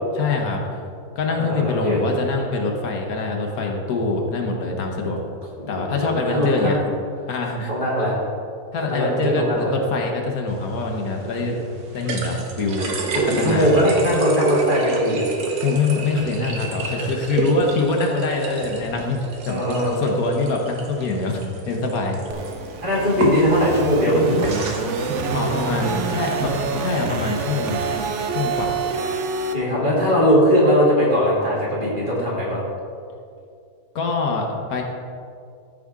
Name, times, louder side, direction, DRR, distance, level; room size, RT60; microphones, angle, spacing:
voice 1, 0.1-0.8 1.2-5.2 5.7-6.8 7.3-7.7 8.7-11.6 11.9-12.9 13.3-13.8 15.6-22.2 25.3-28.8 33.9-34.8, left 3 dB, 70° left, 1 dB, 1.4 m, -24 dB
voice 2, 1.3-2.0 5.6-6.8 7.7-8.2 8.8-9.7 13.3-15.3 19.5-20.0 22.3-22.4 22.8-24.5 29.5-32.6, equal, 35° right, -6 dB, 2.2 m, -20 dB
sound 1, 10.5-27.5, right 3 dB, 85° right, 1.5 m, -30 dB
sound 2, 22.3-29.5, right 4 dB, 60° right, 0.9 m, -27 dB
13.5 x 5.0 x 3.6 m, 2.4 s
omnidirectional pair, 1.6 m